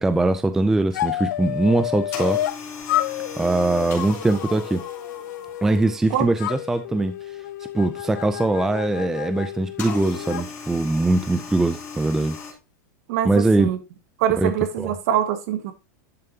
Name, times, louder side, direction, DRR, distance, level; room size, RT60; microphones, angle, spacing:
voice 1, 0.0-2.4 3.4-4.8 5.6-7.2 7.7-12.4 13.2-13.7 14.4-14.5 14.8-14.9, right 2 dB, 5° right, 0.4 m, -21 dB
sound 1, 0.9-2.6 2.9-6.0 6.4-10.5, left 13 dB, 75° left, 0.6 m, -30 dB
sound 2, 2.1-6.1 9.8-12.5, left 5 dB, 25° left, 3.0 m, -37 dB
voice 2, 13.1-13.8 14.2-15.7, right 10 dB, 55° right, 1.6 m, -23 dB
10.5 x 6.8 x 2.8 m
supercardioid pair, 165°, 10 cm